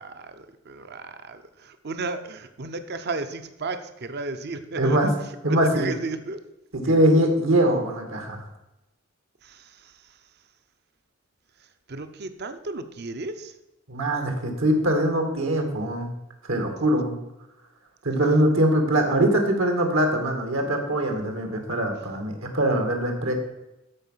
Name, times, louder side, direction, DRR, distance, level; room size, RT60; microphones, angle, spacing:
voice 1, 0.0-5.1 5.5-6.4 6.8-7.1 9.4-9.7 11.9-13.5, right 3 dB, 55° right, 10 dB, 0.8 m, -34 dB
voice 2, 4.7-5.1 5.4-5.9 6.7-8.4 13.9-16.1 16.5-17.2 18.0-23.3, right 1 dB, 80° right, 4 dB, 2.2 m, -22 dB
13.0 x 5.4 x 5.7 m, 0.92 s
head